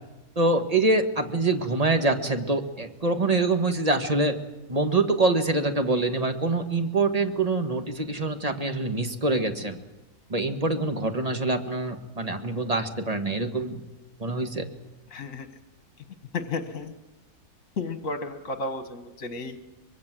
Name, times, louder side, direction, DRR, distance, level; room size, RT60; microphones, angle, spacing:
voice 1, 0.3-4.4 4.7-9.8 10.3-13.8 14.2-14.6, right 2 dB, 25° right, 7 dB, 1.8 m, -25 dB
voice 2, 15.1-15.5 16.3-16.9 17.8-19.6, left 3 dB, 55° left, 9 dB, 1.7 m, -32 dB
24.5 x 22.5 x 7.7 m, 1.0 s
omnidirectional pair, 1.7 m